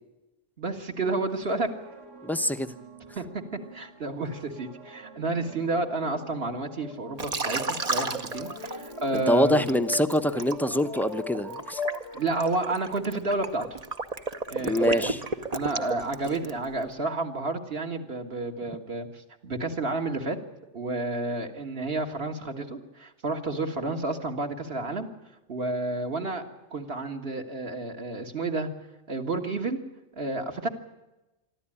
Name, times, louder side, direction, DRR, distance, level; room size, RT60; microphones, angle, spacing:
voice 1, 0.6-1.7 3.2-3.4 3.7-9.7 12.1-13.8 14.5-15.1 15.5-20.4 20.7-25.1 25.5-26.4 26.7-28.7 29.1-29.8 30.2-30.7, right 2 dB, 55° right, 4 dB, 2.0 m, -30 dB
sound 1, 1.3-9.7, right 3 dB, 80° right, 2.3 m, -49 dB
voice 2, 2.2-2.7 9.1-11.8 14.6-15.2, left 1 dB, ahead, 9 dB, 0.7 m, -25 dB
sound 2, 5.4-12.6, left 4 dB, 80° left, 1.9 m, -40 dB
Liquid, 7.2-9.2 9.7-16.7, right 3 dB, 35° right, 1.0 m, -32 dB
24.5 x 13.0 x 10.0 m, 1.0 s
omnidirectional pair, 1.2 m